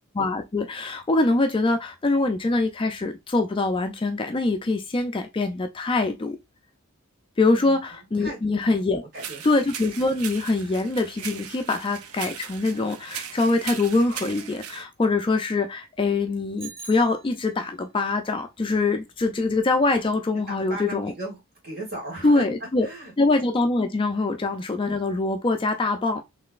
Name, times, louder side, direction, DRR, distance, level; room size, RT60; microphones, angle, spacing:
voice 1, 0.2-6.4 7.4-9.0 9.4-21.1 22.2-22.9 23.2-26.2, left 3 dB, 25° left, 0.3 m, -24 dB
voice 2, 7.5-7.8 8.2-8.6 8.9-9.4 20.5-22.5 22.8-23.1, right 1 dB, 45° right, 2.2 m, -37 dB
sound 1, 9.1-14.8, right 8 dB, 75° right, 0.5 m, -38 dB
Bicycle bell, 16.6-17.8, right 4 dB, 25° right, 0.9 m, -43 dB
3.8 x 3.2 x 2.4 m
head